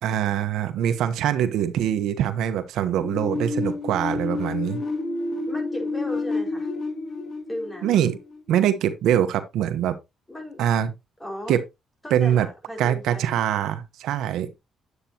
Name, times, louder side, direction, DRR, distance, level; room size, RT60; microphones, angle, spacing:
voice 1, 0.0-4.8 7.8-8.2 8.5-9.9 10.6-10.9 11.5-11.6 12.1-12.5 12.8-14.5, right 10 dB, 85° right, 1.1 m, -23 dB
sound 1, 3.0-8.7, left 3 dB, 50° left, 2.0 m, -29 dB
voice 2, 5.5-6.7 7.5-8.0 10.3-10.6 11.2-11.6 12.0-13.4, left 1 dB, 15° left, 5.2 m, -36 dB
9.7 x 8.3 x 2.9 m
cardioid pair, 90°, 0 cm